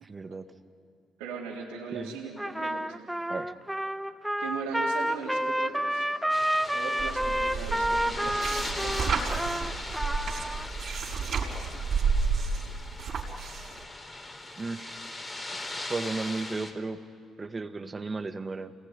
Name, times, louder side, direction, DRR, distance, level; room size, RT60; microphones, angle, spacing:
voice 1, 0.0-0.5 1.9-2.1 3.3-3.5 14.6-15.0 15.7-17.0 17.4-18.7, right 3 dB, 35° right, 9 dB, 1.8 m, -34 dB
voice 2, 1.2-3.0 4.4-6.1 6.7-9.2, right 5 dB, 85° right, -7 dB, 3.8 m, -39 dB
Trumpet, 2.4-10.7, right 1 dB, 5° right, 1.1 m, -29 dB
sound 1, 6.3-16.7, left 2 dB, 25° left, 4.1 m, -39 dB
sound 2, 7.0-13.8, right 5 dB, 60° right, 5.4 m, -31 dB
29.0 x 20.0 x 9.8 m, 2.3 s
supercardioid pair, 55°, 0 cm